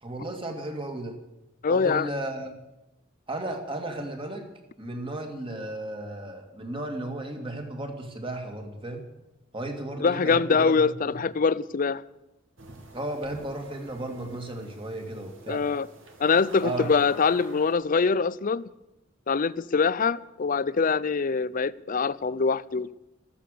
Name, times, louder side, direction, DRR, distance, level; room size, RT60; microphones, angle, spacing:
voice 1, 0.0-1.2 1.7-2.5 3.3-4.4 4.8-9.1 9.5-11.2 12.9-15.6 16.6-16.9, right 1 dB, 25° right, 2.4 m, -34 dB
voice 2, 1.6-2.1 10.0-12.0 15.5-15.9 16.2-18.6 19.3-22.9, left 5 dB, 45° left, 0.5 m, -24 dB
sound 1, 12.6-17.7, right 1 dB, 70° right, 2.6 m, -47 dB
14.0 x 13.5 x 6.8 m
head